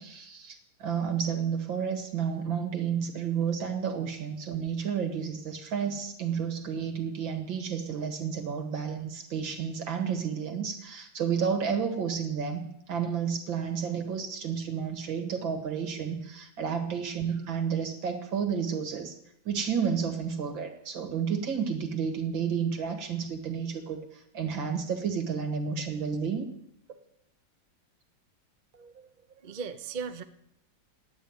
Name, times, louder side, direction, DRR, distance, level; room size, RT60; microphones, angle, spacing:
voice 1, 0.0-19.2 19.5-26.5, right 7 dB, 85° right, 4 dB, 2.5 m, -31 dB
voice 2, 28.7-30.2, right 5 dB, 45° right, 8 dB, 0.6 m, -39 dB
12.0 x 8.8 x 9.3 m, 0.77 s
omnidirectional pair, 2.1 m